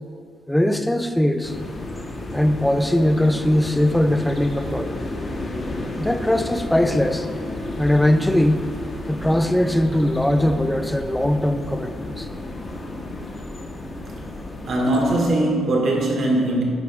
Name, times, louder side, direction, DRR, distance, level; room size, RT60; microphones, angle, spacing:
voice 1, 0.5-1.5 2.3-5.0 6.0-7.3 7.8-12.3, left 1 dB, 5° left, 8 dB, 0.5 m, -20 dB
sound 1, 1.4-15.3, left 2 dB, 30° left, 1.0 m, -32 dB
voice 2, 14.7-16.6, right 1 dB, 60° right, -1 dB, 1.6 m, -20 dB
10.5 x 4.6 x 3.5 m, 2.2 s
cardioid pair, 90°, 0 cm